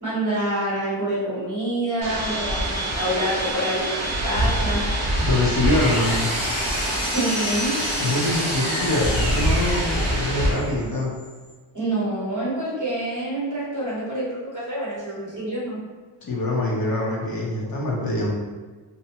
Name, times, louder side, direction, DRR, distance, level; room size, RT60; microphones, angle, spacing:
voice 1, 0.0-4.0 4.2-4.8 7.0-7.8 11.7-15.8, right 1 dB, 40° right, -8 dB, 1.0 m, -27 dB
sound 1, 2.0-10.5, right 1 dB, 60° right, 0.8 m, -26 dB
sound 2, 2.2-11.5, right 3 dB, 10° right, 0.8 m, -38 dB
Engine, 5.2-10.9, equal, 80° left, 1.1 m, -30 dB
voice 2, 5.2-6.3 8.0-11.1 16.2-18.4, left 2 dB, 45° left, -3 dB, 0.7 m, -24 dB
2.7 x 2.1 x 2.7 m, 1.4 s
wide cardioid pair, 95°, 49 cm